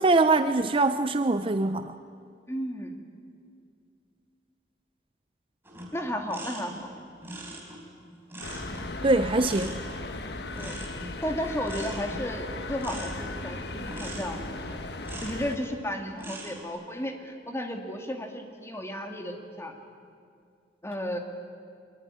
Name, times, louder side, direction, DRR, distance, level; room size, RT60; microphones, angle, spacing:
voice 1, 0.0-2.0 9.0-9.8, right 3 dB, 30° right, 10 dB, 0.6 m, -23 dB
voice 2, 2.5-2.9 5.9-6.9 10.5-10.8 11.2-14.8 15.2-19.8 20.8-21.2, equal, 15° left, 3 dB, 2.4 m, -33 dB
sound 1, 5.6-15.7 16.1-16.6, right 1 dB, 15° right, 4.4 m, -43 dB
sound 2, 8.4-15.5, left 2 dB, 65° left, 1.5 m, -37 dB
23.5 x 21.5 x 9.9 m, 2.3 s
head